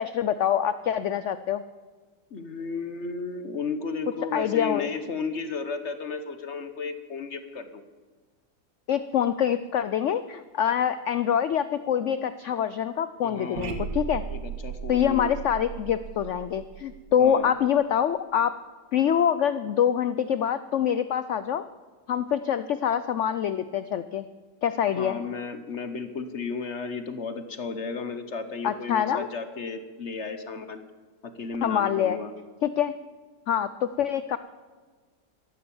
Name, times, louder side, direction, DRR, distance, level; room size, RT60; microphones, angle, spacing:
voice 1, 0.0-1.6 4.3-4.9 8.9-14.2 14.9-18.5 18.9-21.6 22.1-24.3 24.6-25.2 28.6-29.3 31.6-32.2 32.6-32.9 33.5-34.4, left 9 dB, 75° left, 13 dB, 0.6 m, -25 dB
voice 2, 2.3-7.8 13.2-13.8 14.3-15.3 17.2-17.5 24.9-30.8 31.2-32.3, left 4 dB, 50° left, 10 dB, 1.1 m, -34 dB
sound 1, 13.5-17.7, right 7 dB, 70° right, 1.9 m, -36 dB
13.5 x 12.0 x 7.1 m, 1.4 s
omnidirectional pair, 1.8 m